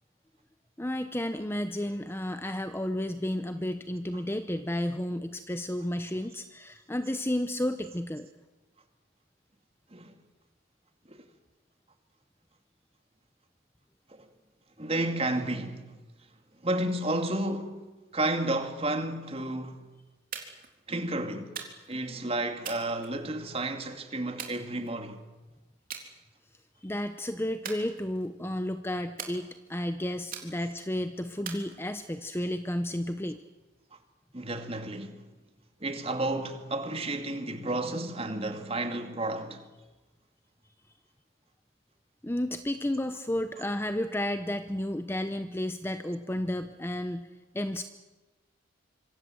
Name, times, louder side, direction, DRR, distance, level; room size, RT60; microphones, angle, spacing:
voice 1, 0.8-8.3 26.8-33.4 42.2-47.3 47.5-47.8, left 1 dB, 10° left, 0.8 m, -32 dB
voice 2, 14.8-15.9 16.6-17.8 18.1-19.8 20.9-21.5 21.9-25.2 34.3-35.2 35.8-39.7, right 2 dB, 30° right, 2.4 m, -31 dB
sound 1, 20.3-20.7 21.6-22.0 22.6-23.6 24.4-25.2 25.9-26.1 26.5-26.9 27.6-28.4 29.2-29.8 30.3-30.9 31.5-32.3, right 7 dB, 45° right, 3.6 m, -42 dB
26.5 x 24.5 x 7.9 m
head